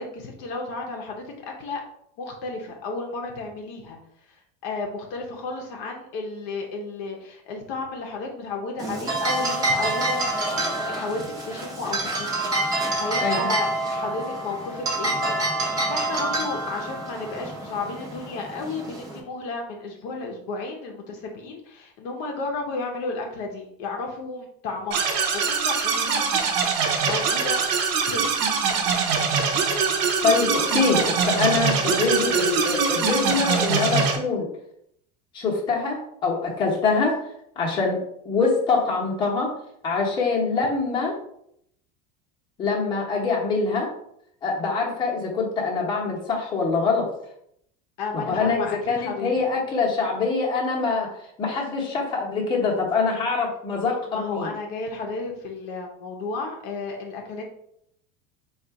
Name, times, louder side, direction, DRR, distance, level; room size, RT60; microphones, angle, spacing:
voice 1, 0.0-1.8 2.2-4.0 4.3-26.8 27.1-28.3 48.0-49.4 54.1-57.4, left 3 dB, 55° left, 1 dB, 0.7 m, -33 dB
sound 1, 8.8-19.2, right 2 dB, 15° right, 0.8 m, -27 dB
voice 2, 13.2-13.5 30.2-34.5 35.3-37.2 37.6-39.5 39.8-41.2 42.6-43.9 44.4-47.1 48.1-51.1 51.4-54.5, left 4 dB, 20° left, -3 dB, 0.9 m, -24 dB
sound 2, 24.9-34.2, right 5 dB, 90° right, 0.9 m, -23 dB
3.9 x 2.4 x 4.6 m, 0.73 s
cardioid pair, 175°, 21 cm